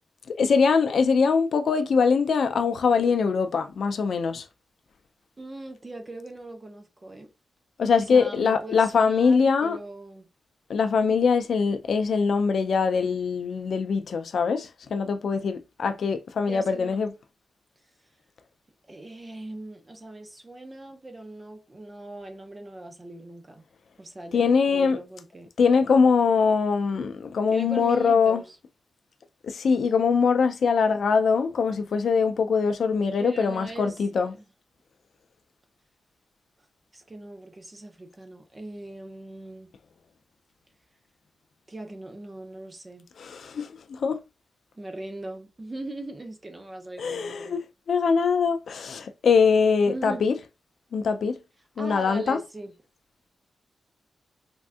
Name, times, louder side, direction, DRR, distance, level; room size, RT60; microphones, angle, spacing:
voice 1, 0.3-4.5 7.8-9.8 10.7-17.1 24.3-25.0 25.6-28.4 29.4-34.3 43.2-44.2 47.0-47.6 47.9-50.4 50.9-51.4 51.8-52.4, left 5 dB, 65° left, 0.3 m, -22 dB
voice 2, 5.4-7.3 7.9-10.3 16.4-17.0 18.9-23.6 24.0-25.5 27.5-28.6 33.2-34.4 36.9-39.7 41.7-43.1 44.8-47.6 49.9-50.2 51.8-52.7, right 2 dB, 25° right, 0.5 m, -40 dB
3.4 x 2.3 x 2.5 m
wide cardioid pair, 135°, 0 cm